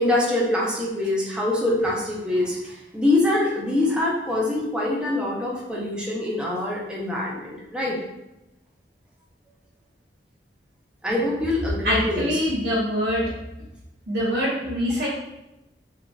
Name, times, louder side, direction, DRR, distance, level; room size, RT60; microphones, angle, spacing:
voice 1, 0.0-8.0 11.0-12.4, left 1 dB, 5° right, -5 dB, 0.6 m, -24 dB
voice 2, 11.8-13.2 14.1-15.1, equal, 65° right, -9 dB, 0.9 m, -24 dB
3.9 x 2.7 x 2.3 m, 0.93 s
head